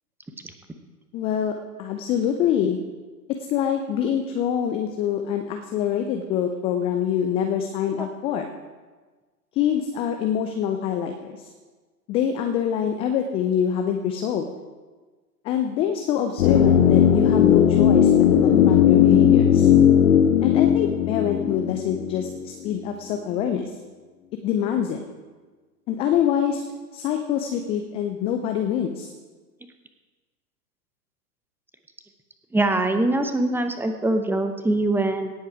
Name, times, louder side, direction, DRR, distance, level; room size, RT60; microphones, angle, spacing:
voice 1, 1.1-2.8 3.3-8.5 9.5-11.5 12.1-14.5 15.4-19.7 20.4-23.7 24.4-25.0 25.9-26.7 26.9-29.1, left 9 dB, 15° left, 6 dB, 0.4 m, -25 dB
sound 1, 16.4-22.4 22.7-22.8, left 9 dB, 55° left, 1.3 m, -17 dB
voice 2, 32.5-35.3, right 2 dB, 5° right, 6 dB, 0.9 m, -23 dB
17.5 x 8.0 x 4.8 m, 1.4 s
figure-of-eight pair, 100°, 48 cm